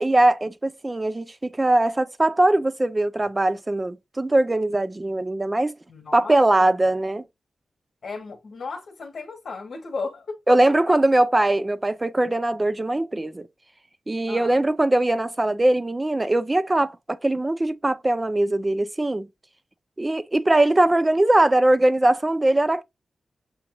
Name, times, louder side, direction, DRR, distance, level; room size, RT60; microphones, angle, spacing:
voice 1, 0.0-5.7 6.1-7.2 10.5-13.5 14.1-19.3 20.0-22.8, right 1 dB, 20° right, 0.4 m, -21 dB
voice 2, 5.9-6.7 8.0-10.4 14.3-14.6, left 4 dB, 65° left, 1.1 m, -35 dB
6.9 x 2.5 x 2.9 m
wide cardioid pair, 135°, 0 cm